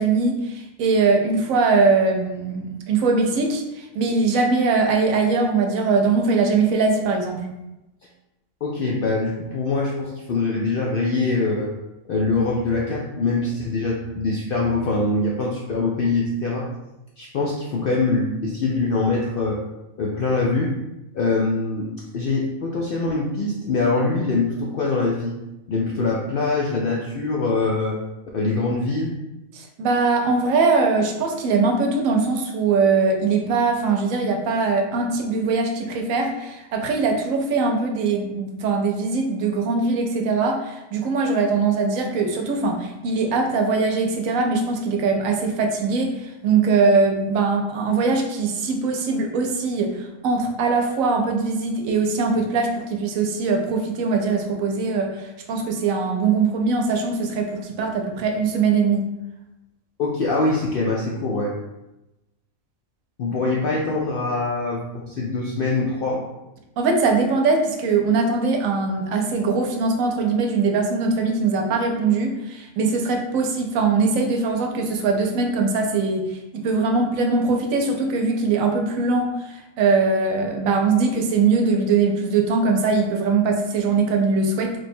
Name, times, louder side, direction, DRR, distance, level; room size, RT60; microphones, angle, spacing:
voice 1, 0.0-7.5 29.5-59.1 66.8-84.7, right 4 dB, 80° right, 3 dB, 1.0 m, -21 dB
voice 2, 8.6-11.7 12.1-16.7 17.2-19.6 20.0-20.8 21.1-25.3 25.7-28.0 28.3-29.2 60.0-61.5 63.2-66.2, left 3 dB, 70° left, -3 dB, 0.5 m, -23 dB
3.1 x 2.2 x 4.2 m, 0.97 s
omnidirectional pair, 1.4 m